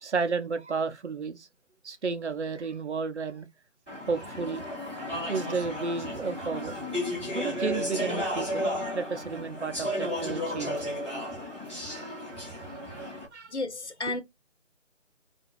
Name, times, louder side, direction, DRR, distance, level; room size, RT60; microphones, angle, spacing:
voice 1, 0.0-1.5 1.8-3.5 4.1-4.7 5.2-6.8 7.3-8.7 8.9-10.9 11.9-12.1 12.7-13.5 14.1-14.2, right 4 dB, 65° right, 0.5 m, -32 dB
Speech / Chatter, 3.9-13.2, left 1 dB, 10° left, 0.9 m, -33 dB
voice 2, 13.5-14.2, left 3 dB, 60° left, 0.8 m, -32 dB
2.5 x 2.2 x 3.1 m
figure-of-eight pair, 155°, 38 cm